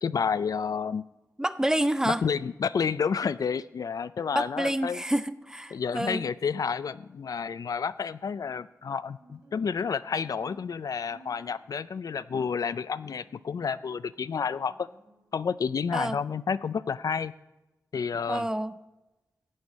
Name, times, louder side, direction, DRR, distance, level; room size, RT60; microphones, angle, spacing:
voice 1, 0.0-1.0 2.0-5.0 5.7-14.9 15.3-17.3 17.9-18.5, left 6 dB, 75° left, 15 dB, 0.3 m, -30 dB
voice 2, 1.4-2.2 4.4-6.2 15.9-16.2 18.3-18.7, right 1 dB, 10° right, 14 dB, 0.4 m, -28 dB
Guitar, 5.3-15.3, right 2 dB, 55° right, 3.0 m, -60 dB
15.0 x 8.8 x 4.1 m, 1.0 s
wide cardioid pair, 110°, 6 cm